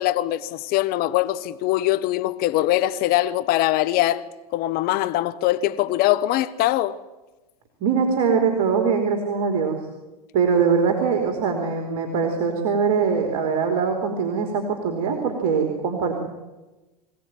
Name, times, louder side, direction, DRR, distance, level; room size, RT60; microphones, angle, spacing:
voice 1, 0.0-4.2 4.5-7.0, left 15 dB, 50° left, 1.1 m, -22 dB
voice 2, 7.8-9.8 10.3-16.2, right 6 dB, 60° right, 3.6 m, -22 dB
23.5 x 17.5 x 9.3 m
hypercardioid pair, 95°, 20 cm